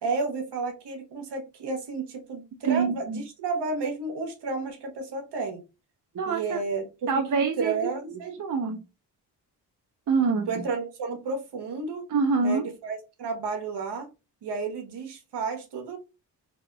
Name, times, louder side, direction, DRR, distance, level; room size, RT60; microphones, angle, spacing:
voice 1, 0.0-5.6 6.2-6.9 7.3-8.4 10.5-12.0 12.4-14.1 14.4-16.0, right 4 dB, 65° right, 4 dB, 1.2 m, -32 dB
voice 2, 2.6-3.2 6.1-6.6 7.1-7.7 8.4-8.8 10.1-10.5 12.1-12.6, right 5 dB, 45° right, 4 dB, 0.7 m, -25 dB
3.4 x 3.0 x 2.2 m, 0.28 s
supercardioid pair, 45°, 43 cm